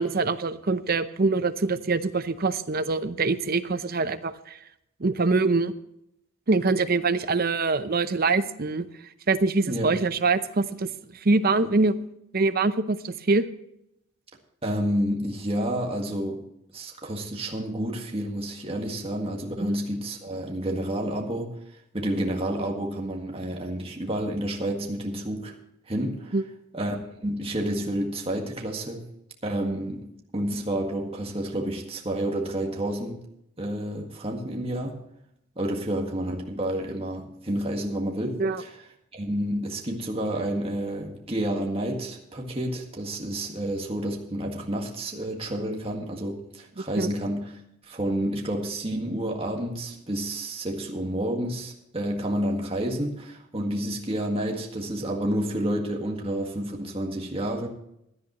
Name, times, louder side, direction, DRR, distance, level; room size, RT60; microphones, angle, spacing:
voice 1, 0.0-4.6 5.0-5.7 6.5-8.9 9.3-10.9 11.2-12.0 12.3-13.4 19.6-19.7 26.3-26.4 38.4-38.6 47.0-47.1, right 3 dB, 45° right, 0.7 m, -24 dB
voice 2, 9.6-10.0 14.6-16.4 16.7-21.5 21.9-25.6 25.9-26.4 26.7-29.0 29.4-33.2 33.6-35.0 35.6-38.7 39.1-57.7, right 1 dB, 25° right, 1.8 m, -30 dB
17.0 x 11.0 x 3.1 m
head